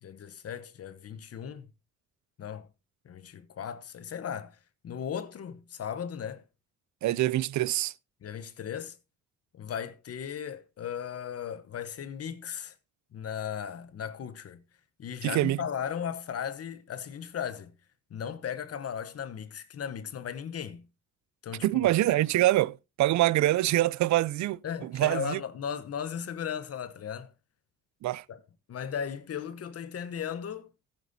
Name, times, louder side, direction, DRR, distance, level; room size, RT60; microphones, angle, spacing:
voice 1, 0.0-1.7 2.4-2.7 3.0-4.6 4.8-6.5 8.2-9.0 9.5-12.8 13.1-14.6 15.0-17.7 18.1-20.9 21.4-21.9 24.6-27.3 28.3-28.4 28.7-30.7, left 8 dB, 50° left, 1.0 m, -36 dB
voice 2, 7.0-7.9 15.2-15.6 21.6-25.4 28.0-28.2, right 15 dB, 70° right, 0.5 m, -25 dB
15.0 x 9.1 x 2.7 m
cardioid pair, 90°, 30 cm